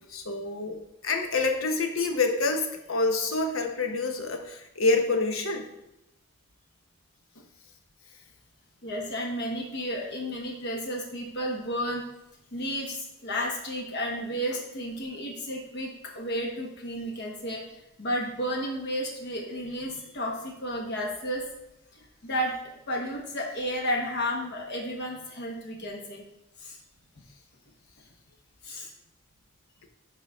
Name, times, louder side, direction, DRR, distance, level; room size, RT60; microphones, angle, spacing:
voice 1, 0.1-5.7, left 3 dB, 70° left, 5 dB, 1.0 m, -27 dB
voice 2, 8.8-12.0 12.5-17.6 18.0-21.5 21.9-26.2 26.6-26.8 28.6-28.9, equal, 55° left, 0 dB, 1.3 m, -32 dB
11.0 x 3.9 x 3.6 m, 0.86 s
head